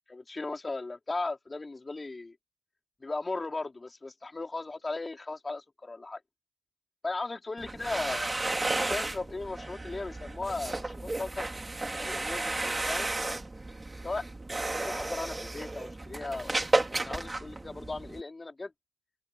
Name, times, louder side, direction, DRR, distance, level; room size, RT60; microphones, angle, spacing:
voice 1, 0.1-2.4 3.0-6.2 7.0-8.3 8.8-11.5 12.0-13.1 14.0-14.3 14.8-18.7, left 3 dB, 20° left, 4.2 m, -37 dB
sound 1, 7.6-18.2, right 2 dB, 15° right, 3.3 m, -33 dB
open air
cardioid pair, 90°, 0 cm